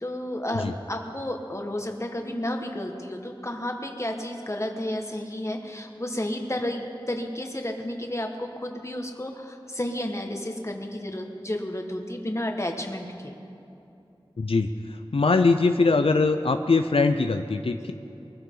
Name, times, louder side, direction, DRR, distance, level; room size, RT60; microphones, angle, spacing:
voice 1, 0.0-13.3, left 1 dB, 30° left, 3 dB, 1.6 m, -32 dB
voice 2, 14.4-17.9, left 3 dB, 85° left, 7 dB, 0.5 m, -22 dB
22.5 x 15.0 x 3.9 m, 2.8 s
wide cardioid pair, 45°, 9 cm